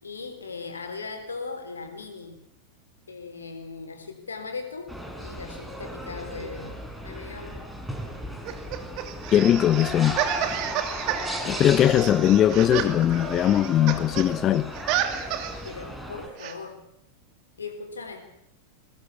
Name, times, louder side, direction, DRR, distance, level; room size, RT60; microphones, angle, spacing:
voice 1, 0.0-2.4 3.1-7.6 11.4-11.6 15.6-16.8 17.6-18.2, left 4 dB, 75° left, 7 dB, 3.9 m, -38 dB
sound 1, 4.9-16.3, equal, 5° right, 5.2 m, -35 dB
sound 2, 8.4-14.3 14.5-15.7 16.4-16.5, right 11 dB, 40° right, 2.6 m, -31 dB
voice 2, 9.3-10.2 11.5-14.7, left 11 dB, 30° left, 14 dB, 0.8 m, -20 dB
22.0 x 19.0 x 8.4 m, 0.78 s
figure-of-eight pair, 90°, 0 cm